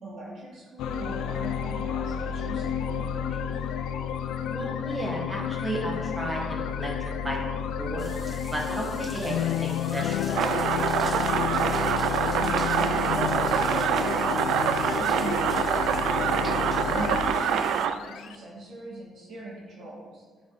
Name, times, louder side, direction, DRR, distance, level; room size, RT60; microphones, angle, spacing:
voice 1, 0.0-3.5 12.3-16.3 16.9-20.2, right 2 dB, 65° right, -5 dB, 2.1 m, -40 dB
sound 1, 0.8-18.3, left 8 dB, 90° left, 0.4 m, -30 dB
voice 2, 4.5-6.9 7.2-8.2 8.5-10.5 10.8-11.2, right 1 dB, 10° right, -2 dB, 1.9 m, -34 dB
sound 2, 8.0-17.9, right 3 dB, 35° right, 0.7 m, -45 dB
sound 3, 10.3-17.9, right 9 dB, 80° right, 0.3 m, -26 dB
8.4 x 4.6 x 4.1 m, 1.4 s
cardioid pair, 90°, 0 cm